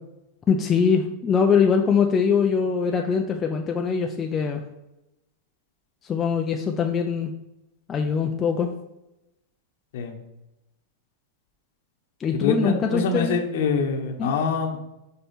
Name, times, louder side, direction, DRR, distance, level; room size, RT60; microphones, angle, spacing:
voice 1, 0.5-4.6 6.0-7.3 7.9-8.7 12.2-13.4 14.2-14.3, left 6 dB, 25° left, 3 dB, 0.5 m, -22 dB
voice 2, 12.3-14.8, left 5 dB, 70° left, 3 dB, 1.1 m, -25 dB
5.5 x 4.3 x 4.4 m, 0.92 s
supercardioid pair, 135°, 0 cm